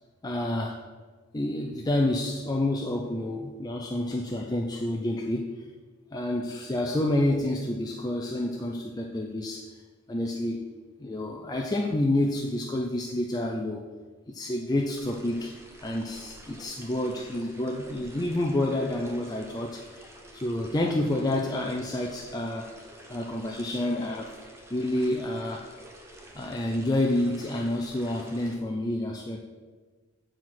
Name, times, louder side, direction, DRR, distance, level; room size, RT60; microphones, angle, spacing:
voice 1, 0.2-0.8 1.3-5.6 6.1-9.8 10.1-10.7 11.0-13.8 14.3-15.5 15.8-22.7 23.1-24.3 24.7-25.7 26.3-29.4, left 1 dB, 20° left, 0 dB, 0.5 m, -29 dB
sound 1, 14.9-28.6, right 1 dB, 15° right, 1.0 m, -49 dB
7.4 x 4.8 x 6.0 m, 1.4 s
head